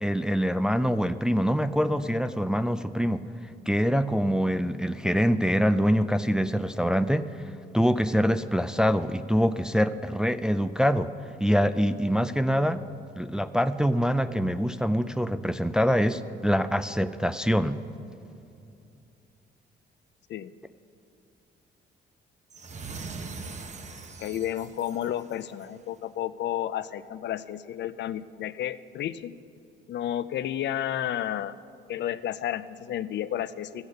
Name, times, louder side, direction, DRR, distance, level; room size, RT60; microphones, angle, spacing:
voice 1, 0.0-3.2 3.7-7.3 7.7-11.1 11.4-12.8 13.2-17.8, equal, 5° right, 11 dB, 0.4 m, -24 dB
sound 1, 22.5-25.8, right 4 dB, 35° right, 0.9 m, -41 dB
voice 2, 24.2-29.3 29.9-31.5 31.9-33.8, left 11 dB, 65° left, 14 dB, 0.5 m, -31 dB
13.5 x 8.0 x 6.7 m, 2.6 s
cardioid pair, 90°, 20 cm